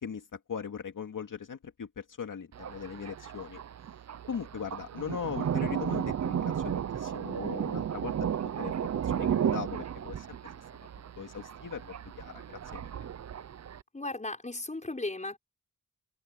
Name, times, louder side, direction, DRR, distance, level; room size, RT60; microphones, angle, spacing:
voice 1, 0.0-3.6 4.3-8.3 8.6-10.3 10.9-13.1, left 7 dB, 75° left, 2.3 m, -40 dB
Thunder, 2.5-13.8, right 8 dB, 55° right, 0.6 m, -34 dB
voice 2, 13.9-15.4, left 2 dB, 20° left, 6.2 m, -36 dB
wide cardioid pair, 120°, 33 cm